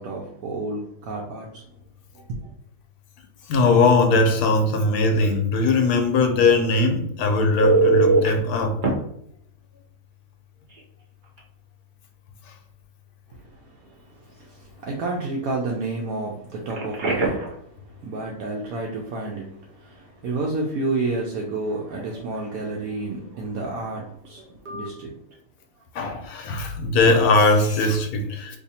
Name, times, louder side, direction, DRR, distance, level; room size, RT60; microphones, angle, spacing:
voice 1, 0.0-1.7 2.1-2.5 13.4-25.1 26.8-26.9, right 2 dB, 70° right, -1 dB, 1.0 m, -31 dB
voice 2, 3.5-8.7 25.9-28.6, left 3 dB, 80° left, 5 dB, 1.1 m, -20 dB
Telephone, 7.6-8.3 8.8-8.9 10.7-10.8 11.2-11.4 16.7-17.5 24.7-24.9, right 3 dB, 45° right, 0.6 m, -21 dB
2.7 x 2.6 x 4.1 m, 0.72 s
omnidirectional pair, 1.6 m